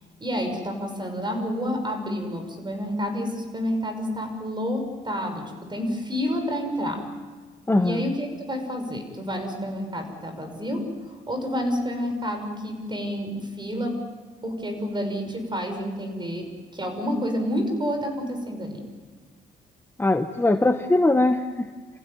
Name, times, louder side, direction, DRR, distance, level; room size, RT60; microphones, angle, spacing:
voice 1, 0.2-7.0 7.8-14.0 14.4-18.8, equal, 25° right, 6 dB, 5.8 m, -29 dB
voice 2, 7.7-8.0 20.0-21.7, left 2 dB, 10° left, 6 dB, 1.1 m, -21 dB
28.5 x 15.5 x 9.5 m, 1.4 s
cardioid pair, 90°, 20 cm